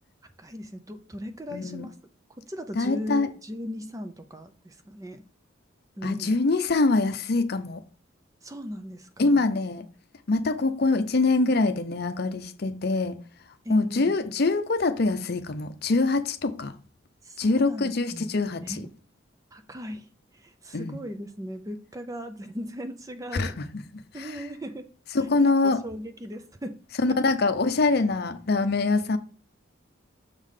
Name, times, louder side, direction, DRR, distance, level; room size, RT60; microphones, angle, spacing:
voice 1, 0.4-1.9 2.4-5.2 6.0-6.4 8.4-9.5 13.6-14.2 17.2-18.9 19.5-23.6 24.1-24.9 25.4-26.7 27.0-27.3, equal, 15° right, 0.5 m, -38 dB
voice 2, 1.5-1.9 2.8-3.3 6.0-7.8 9.2-9.9 10.3-13.2 13.7-16.7 17.4-18.7 20.7-21.0 23.3-23.8 24.2-24.3 25.1-25.8 27.0-29.2, left 3 dB, 50° left, 0.6 m, -24 dB
6.4 x 3.8 x 4.9 m
head